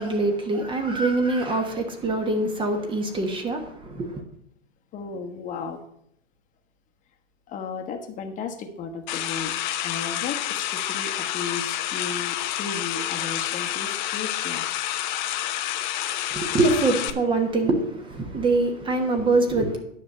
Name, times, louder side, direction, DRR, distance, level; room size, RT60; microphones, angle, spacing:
voice 1, 0.0-4.2 16.3-19.8, right 2 dB, 15° right, 5 dB, 1.1 m, -24 dB
voice 2, 4.9-5.8 7.5-9.5 9.8-14.7 18.2-18.4, left 5 dB, 20° left, 4 dB, 1.2 m, -35 dB
sound 1, 9.1-17.1, left 13 dB, 40° left, 0.8 m, -29 dB
9.9 x 5.8 x 6.6 m, 0.70 s
hypercardioid pair, 125°, 37 cm